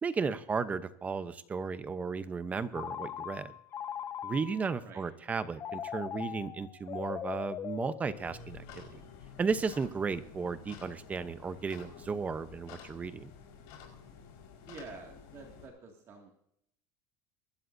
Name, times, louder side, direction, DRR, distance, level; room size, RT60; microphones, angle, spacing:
voice 1, 0.0-3.5 4.2-8.9 9.4-13.3, right 5 dB, 15° right, 12 dB, 0.8 m, -34 dB
Telephone, 2.7-4.7 5.6-8.6, left 9 dB, 30° left, 0.5 m, -40 dB
sound 1, 8.1-15.7, left 6 dB, 60° left, 4.8 m, -51 dB
voice 2, 14.7-16.3, right 4 dB, 35° right, 2 dB, 2.2 m, -48 dB
24.0 x 12.5 x 2.7 m, 0.71 s
supercardioid pair, 145°, 9 cm